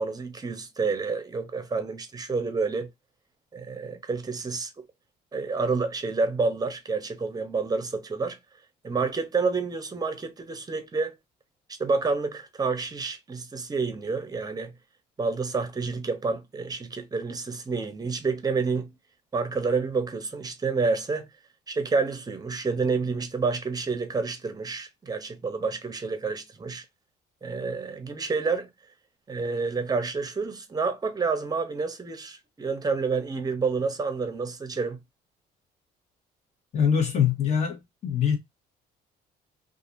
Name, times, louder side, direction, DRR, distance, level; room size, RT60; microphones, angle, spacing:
voice 1, 0.0-2.9 3.5-4.7 5.3-8.4 8.8-11.1 11.8-14.7 15.2-18.9 19.3-21.3 21.7-26.8 27.4-28.7 29.3-35.0, right 4 dB, 20° right, 0.7 m, -29 dB
voice 2, 36.7-38.4, left 8 dB, 40° left, 1.3 m, -23 dB
2.7 x 2.5 x 2.5 m
cardioid pair, 110°, 17 cm